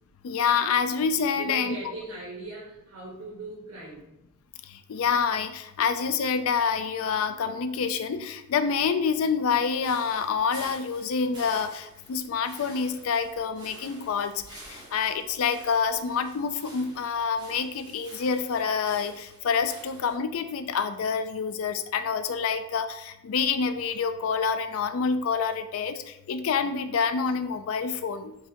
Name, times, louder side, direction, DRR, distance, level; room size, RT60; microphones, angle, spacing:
voice 1, 0.2-1.8 4.6-14.3 14.7-28.4, left 6 dB, 80° left, 10 dB, 0.4 m, -27 dB
voice 2, 1.3-4.1 24.0-24.2, right 2 dB, 85° right, -6 dB, 1.3 m, -40 dB
sound 1, 9.8-20.2, right 2 dB, 20° right, 1.0 m, -49 dB
4.7 x 3.3 x 2.9 m, 0.86 s
head